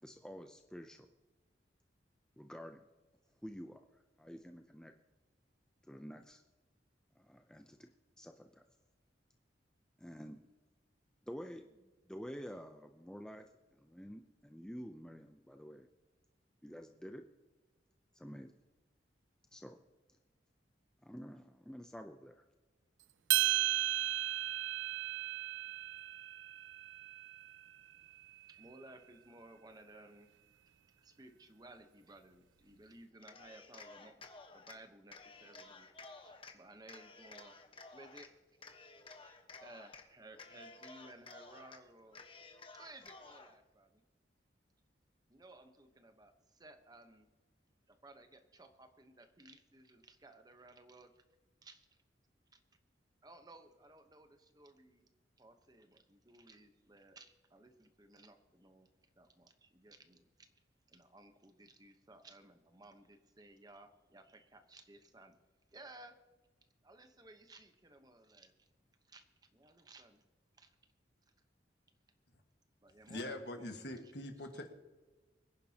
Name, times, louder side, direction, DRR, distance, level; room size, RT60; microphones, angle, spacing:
voice 1, 0.0-1.1 2.4-2.8 3.4-4.9 5.9-6.4 7.2-7.9 8.2-8.6 10.0-10.4 11.3-11.7 12.1-13.5 13.7-15.9 16.6-17.2 18.1-18.5 19.5-19.8 21.0-22.4, equal, 5° left, 5 dB, 0.5 m, -49 dB
sound 1, 23.3-27.7, right 15 dB, 85° right, 0.4 m, -35 dB
voice 2, 28.5-30.3 31.0-34.1 34.5-35.9 36.1-37.5 37.9-38.3 39.2-42.2 42.7-44.0 45.3-47.3 47.9-51.1 51.6-51.9 52.5-52.6 53.2-55.1 55.4-58.9 59.2-60.5 60.9-65.3 65.7-66.2 66.8-68.7 69.0-69.2 69.5-70.2 70.6-70.7 72.8-74.0 74.5-74.7, right 2 dB, 20° right, 7 dB, 1.0 m, -58 dB
Cheering, 33.2-34.8 35.1-36.6 36.9-38.3 38.6-40.1 40.3-41.8 42.1-43.5, left 3 dB, 30° left, 1.1 m, -54 dB
voice 3, 73.1-74.7, left 1 dB, 60° left, 5 dB, 1.6 m, -43 dB
24.5 x 10.5 x 2.9 m, 1.2 s
head